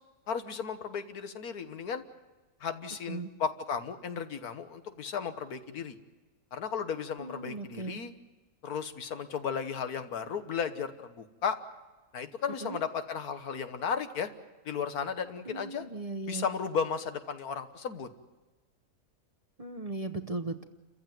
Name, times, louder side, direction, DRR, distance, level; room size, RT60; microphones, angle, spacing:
voice 1, 0.3-2.0 2.6-6.0 6.5-8.1 8.6-11.6 12.1-14.3 14.7-15.9 16.3-18.1, left 6 dB, 90° left, 9 dB, 1.8 m, -34 dB
voice 2, 7.2-8.0 12.6-12.8 15.5-16.5 19.6-20.6, right 2 dB, 30° right, 8 dB, 0.8 m, -37 dB
29.0 x 15.0 x 9.2 m, 1.2 s
omnidirectional pair, 1.5 m